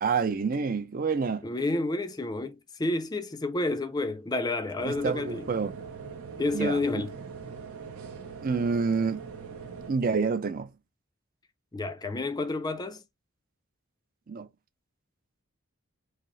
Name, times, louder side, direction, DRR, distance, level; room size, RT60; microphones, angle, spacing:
voice 1, 0.0-1.4 4.8-5.7 6.5-7.0 8.4-9.2 9.9-10.7 14.3-14.5, right 5 dB, 40° right, 0.4 m, -28 dB
voice 2, 1.4-5.5 6.4-7.1 11.7-13.0, left 2 dB, 20° left, 0.4 m, -30 dB
sound 1, 4.8-9.9, right 5 dB, 75° right, 0.8 m, -41 dB
4.8 x 2.0 x 3.1 m
head